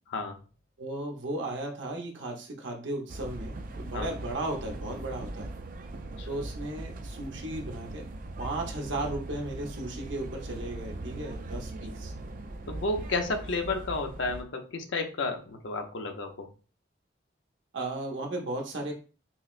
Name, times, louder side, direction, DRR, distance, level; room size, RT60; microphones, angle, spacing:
voice 1, 0.8-5.5 6.2-8.0 8.4-12.1 17.7-18.9, right 2 dB, 80° right, 1 dB, 0.9 m, -35 dB
sound 1, 3.1-14.4, right 2 dB, 45° right, 0.3 m, -40 dB
voice 2, 12.7-16.5, left 3 dB, 80° left, 5 dB, 0.7 m, -32 dB
5.7 x 2.1 x 2.4 m, 0.35 s
head